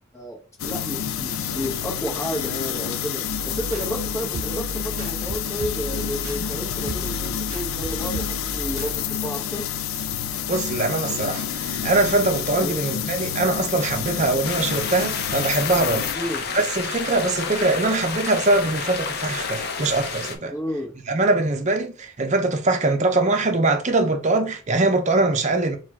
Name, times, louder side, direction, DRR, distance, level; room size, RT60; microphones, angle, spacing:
voice 1, 0.1-9.7 12.6-12.8 16.1-16.4 20.5-21.0, equal, 15° left, 1.3 m, -32 dB
sound 1, 0.6-16.1, left 9 dB, 90° left, 0.4 m, -29 dB
sound 2, 3.3-9.0, right 3 dB, 85° right, 0.5 m, -35 dB
voice 2, 10.5-16.1 16.5-20.5 21.1-25.8, right 2 dB, 35° right, 0.7 m, -22 dB
sound 3, 14.4-20.4, left 5 dB, 50° left, 0.7 m, -30 dB
4.3 x 2.4 x 4.4 m
head